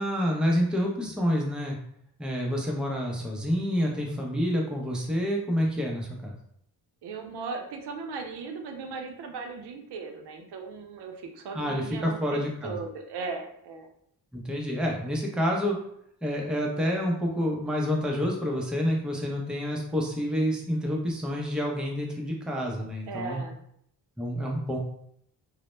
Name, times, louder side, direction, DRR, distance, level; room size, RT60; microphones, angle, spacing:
voice 1, 0.0-1.8 2.2-6.4 11.5-12.8 14.3-15.8 16.2-23.4 24.2-24.8, equal, ahead, -1 dB, 0.5 m, -28 dB
voice 2, 7.0-13.9 23.1-23.6, right 4 dB, 75° right, 4 dB, 0.5 m, -37 dB
2.0 x 2.0 x 3.0 m, 0.69 s
cardioid pair, 75°, 41 cm